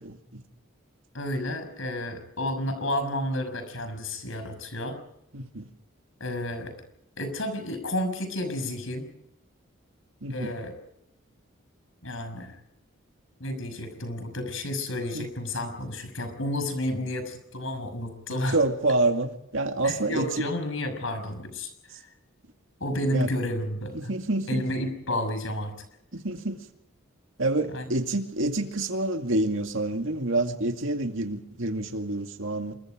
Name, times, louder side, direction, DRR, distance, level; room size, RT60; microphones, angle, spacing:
voice 1, 1.1-5.0 6.2-6.7 7.2-9.1 10.3-10.7 12.0-12.6 13.4-18.6 19.8-21.7 22.0-22.1 22.8-24.1 24.5-25.7 27.7-27.9, left 1 dB, 70° left, 8 dB, 6.2 m, -31 dB
voice 2, 5.3-5.6 10.2-10.5 15.1-15.2 18.5-20.3 23.1-23.3 23.9-24.6 26.1-26.7 27.4-32.7, right 2 dB, 70° right, 5 dB, 2.2 m, -27 dB
27.5 x 23.0 x 5.1 m, 0.78 s
head